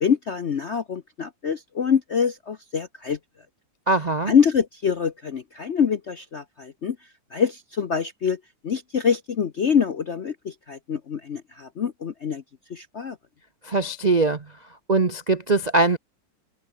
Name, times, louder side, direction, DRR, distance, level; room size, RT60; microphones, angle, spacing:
voice 1, 0.0-3.2 4.3-7.0 7.3-12.4 12.7-13.2, left 7 dB, 60° left, 0.7 m, -25 dB
voice 2, 3.9-4.3 13.6-14.4 14.9-16.0, right 3 dB, 70° right, 0.4 m, -21 dB
omnidirectional pair, 2.4 m